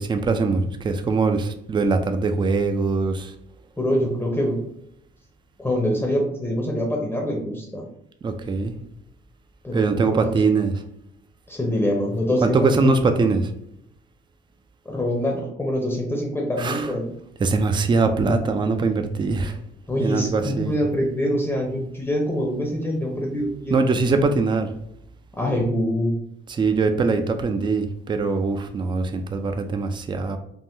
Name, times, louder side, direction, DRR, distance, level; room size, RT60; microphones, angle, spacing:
voice 1, 0.0-3.3 8.2-8.7 9.7-10.8 12.4-13.5 16.6-16.9 17.4-19.6 20.0-20.7 23.7-24.7 26.5-30.4, right 4 dB, 25° right, 7 dB, 0.4 m, -22 dB
voice 2, 3.8-4.6 5.6-7.8 9.6-10.4 11.5-13.2 14.8-17.1 19.9-23.8 25.3-26.1, equal, 10° left, -1 dB, 0.6 m, -25 dB
3.5 x 2.1 x 2.6 m, 0.76 s
cardioid pair, 90°, 20 cm